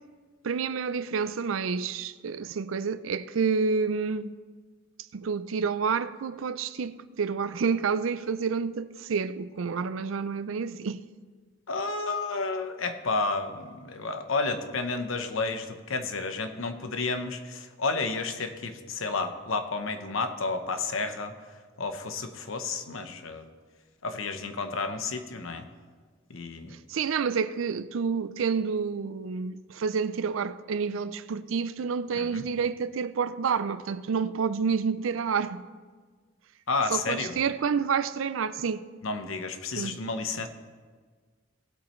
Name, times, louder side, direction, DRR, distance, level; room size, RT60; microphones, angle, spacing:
voice 1, 0.4-4.3 5.1-11.0 26.7-35.6 36.9-38.9 39.8-40.0, right 5 dB, 80° right, 0.5 m, -29 dB
voice 2, 11.7-21.3 21.8-23.5 24.0-25.7 26.3-26.8 32.1-32.5 36.7-37.4 39.0-40.5, left 3 dB, 85° left, 0.9 m, -31 dB
18.5 x 8.5 x 3.2 m
head